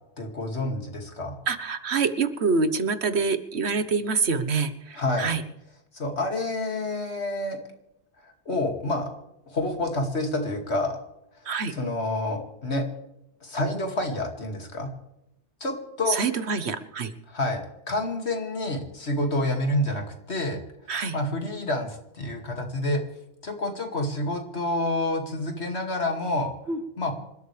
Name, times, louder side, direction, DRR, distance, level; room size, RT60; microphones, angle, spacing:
voice 1, 0.2-1.4 4.9-5.3 5.9-7.6 8.2-9.1 9.5-11.0 11.7-12.9 13.4-14.9 15.6-16.2 17.3-20.6 21.1-23.0 23.4-26.5 27.0-27.1, left 1 dB, 80° left, 3 dB, 2.7 m, -28 dB
voice 2, 1.5-5.4 11.5-11.7 16.1-17.1 20.9-21.1 26.7-26.8, right 4 dB, 75° right, 11 dB, 1.4 m, -26 dB
26.5 x 13.0 x 3.4 m, 0.86 s
omnidirectional pair, 1.1 m